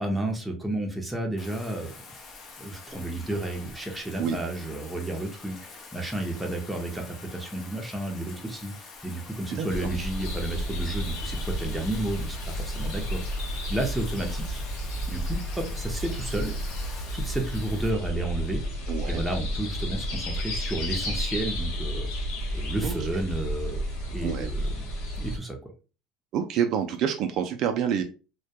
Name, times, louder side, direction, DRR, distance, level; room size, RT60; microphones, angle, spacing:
voice 1, 0.0-1.9 2.6-14.6 15.1-16.6 16.9-18.6 19.1-22.1 22.5-24.9 25.2-25.7, right 2 dB, 5° right, 1 dB, 0.6 m, -32 dB
Bathtub (filling or washing), 1.4-17.9, left 4 dB, 40° left, 0.6 m, -46 dB
voice 2, 9.5-9.9 18.9-19.2 22.8-23.2 24.2-24.5 26.3-28.0, right 8 dB, 55° right, 5 dB, 0.3 m, -28 dB
sound 1, 9.7-25.4, equal, 75° left, 0.9 m, -32 dB
2.2 x 2.2 x 2.7 m, 0.33 s
supercardioid pair, 115°, 0 cm